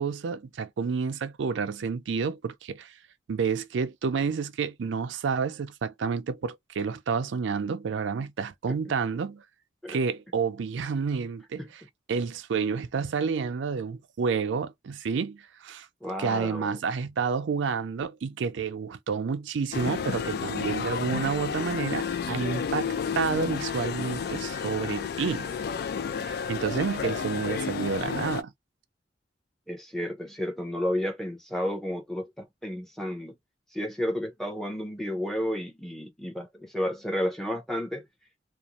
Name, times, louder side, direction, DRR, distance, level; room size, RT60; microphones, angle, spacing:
voice 1, 0.0-3.0 3.3-9.4 9.9-11.8 12.1-15.9 16.2-25.5 26.2-28.5, right 5 dB, 80° right, 0.4 m, -29 dB
voice 2, 16.0-16.8 29.7-33.3 33.7-38.0, equal, ahead, 0.6 m, -32 dB
sound 1, 19.7-28.4, left 6 dB, 55° left, 0.3 m, -31 dB
2.5 x 2.0 x 2.9 m
head